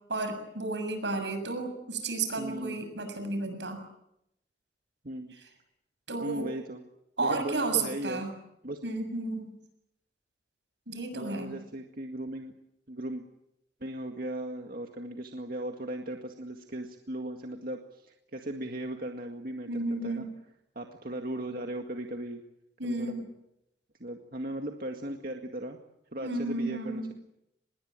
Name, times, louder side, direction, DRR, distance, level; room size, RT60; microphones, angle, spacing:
voice 1, 0.1-3.8 6.1-6.5 7.2-8.3 8.8-9.5 10.9-11.5 19.7-20.3 22.8-23.3 26.2-27.1, right 3 dB, 80° right, 7 dB, 7.0 m, -32 dB
voice 2, 2.4-2.8 5.0-5.3 6.2-6.8 7.2-8.3 8.6-8.8 11.1-12.5 12.9-13.3 13.8-20.3 20.8-22.4 22.8-23.2 24.0-25.8 26.1-27.1, right 1 dB, 55° right, 3 dB, 2.0 m, -37 dB
25.5 x 21.5 x 9.0 m, 0.81 s
head